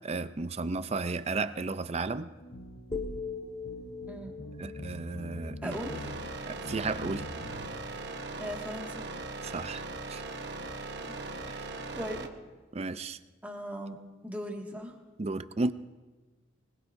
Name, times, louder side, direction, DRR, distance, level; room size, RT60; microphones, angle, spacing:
voice 1, 0.0-2.3 4.6-5.7 6.5-7.3 9.4-9.8 10.1-10.2 11.5-11.7 12.7-13.2 15.2-15.7, right 3 dB, 35° right, 12 dB, 0.5 m, -33 dB
sound 1, 2.4-7.7, left 1 dB, 60° left, 1.0 m, -45 dB
sound 2, 2.9-7.0, left 4 dB, 20° left, 0.9 m, -42 dB
voice 2, 5.6-6.1 8.4-9.1 12.0-12.3 13.4-13.9 14.2-15.0, equal, 10° right, -1 dB, 2.0 m, -38 dB
sound 3, 5.7-12.3, right 3 dB, 60° right, 1.2 m, -39 dB
25.0 x 20.0 x 2.7 m, 1.2 s
head